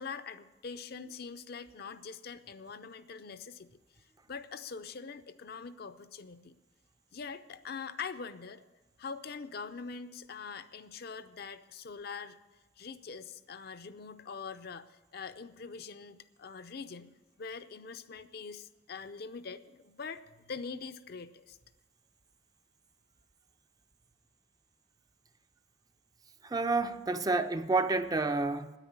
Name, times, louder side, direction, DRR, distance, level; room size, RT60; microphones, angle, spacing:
voice 1, 0.0-3.8 4.3-6.6 7.1-8.6 9.0-12.4 12.8-17.1 17.4-21.6, left 5 dB, 55° left, 0.6 m, -43 dB
voice 2, 26.4-28.7, right 3 dB, 20° right, 0.5 m, -29 dB
9.9 x 9.1 x 8.7 m
head